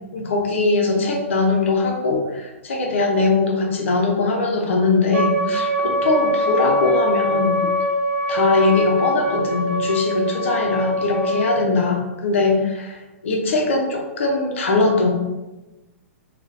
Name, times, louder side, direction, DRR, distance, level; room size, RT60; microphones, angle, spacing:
voice 1, 0.1-7.6 8.3-15.1, left 3 dB, 55° left, 1 dB, 0.7 m, -21 dB
Wind instrument woodwind instrument, 5.1-11.7, equal, 50° right, 0.8 m, -23 dB
3.7 x 2.4 x 2.6 m, 1.1 s
figure-of-eight pair, 110°, 8 cm